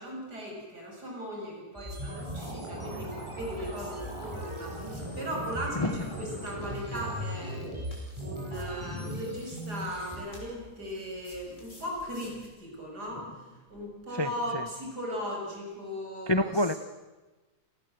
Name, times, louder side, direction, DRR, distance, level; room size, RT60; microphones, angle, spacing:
voice 1, 0.0-7.6 8.2-16.6, equal, 80° right, -1 dB, 7.5 m, -38 dB
sound 1, 1.7-10.2, equal, 15° right, 8.0 m, -38 dB
sound 2, 1.8-12.5, left 1 dB, 45° left, 6.0 m, -55 dB
voice 2, 14.1-14.7 16.3-16.7, left 1 dB, 30° left, 10 dB, 0.5 m, -28 dB
29.0 x 18.0 x 7.8 m, 1.2 s
omnidirectional pair, 1.7 m